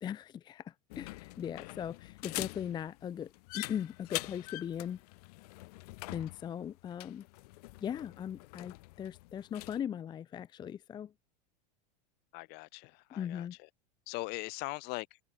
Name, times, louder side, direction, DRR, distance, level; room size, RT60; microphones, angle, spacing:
voice 1, 0.0-5.0 6.1-7.3 7.8-11.1 13.1-13.6, left 9 dB, 20° left, 0.5 m, -39 dB
sound 1, 0.9-9.8, left 23 dB, 65° left, 2.7 m, -45 dB
voice 2, 12.3-13.5 14.1-15.2, left 26 dB, 50° left, 1.4 m, -41 dB
supercardioid pair, 125°, 21 cm